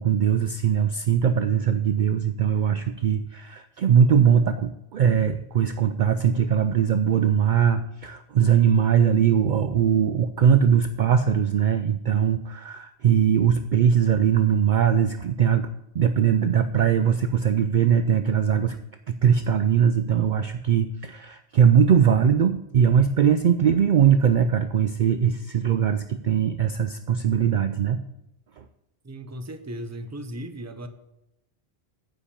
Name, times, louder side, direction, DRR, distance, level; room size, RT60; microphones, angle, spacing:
voice 1, 0.0-15.7 15.9-18.8 19.1-28.0, right 8 dB, 60° right, 10 dB, 0.6 m, -21 dB
voice 2, 29.0-30.9, right 1 dB, 20° right, 9 dB, 0.7 m, -36 dB
9.8 x 5.8 x 8.4 m, 0.86 s
omnidirectional pair, 1.1 m